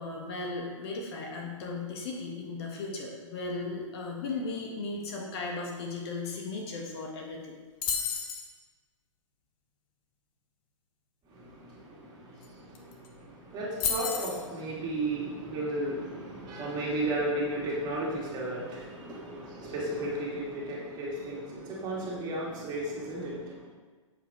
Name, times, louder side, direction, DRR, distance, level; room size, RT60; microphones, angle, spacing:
voice 1, 0.0-7.5, left 3 dB, 50° left, 0 dB, 2.0 m, -36 dB
sound 1, 7.8-8.5 12.4-12.5 12.7-13.1 13.8-14.4, left 7 dB, 30° left, 1.2 m, -31 dB
voice 2, 11.3-23.7, right 1 dB, 25° right, -5 dB, 3.0 m, -34 dB
8.0 x 7.9 x 4.8 m, 1.4 s
hypercardioid pair, 125°, 17 cm